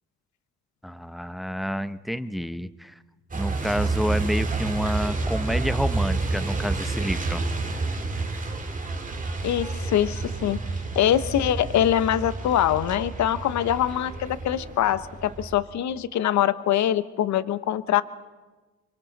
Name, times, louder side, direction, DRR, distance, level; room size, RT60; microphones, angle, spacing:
voice 1, 0.8-2.9 3.3-7.4, equal, ahead, 14 dB, 0.7 m, -29 dB
Truck, 3.3-15.6, right 3 dB, 25° right, 2.3 m, -29 dB
voice 2, 9.4-10.6 10.9-18.0, left 11 dB, 70° left, 15 dB, 0.8 m, -23 dB
27.5 x 24.0 x 4.0 m, 1.3 s
cardioid pair, 90°, 30 cm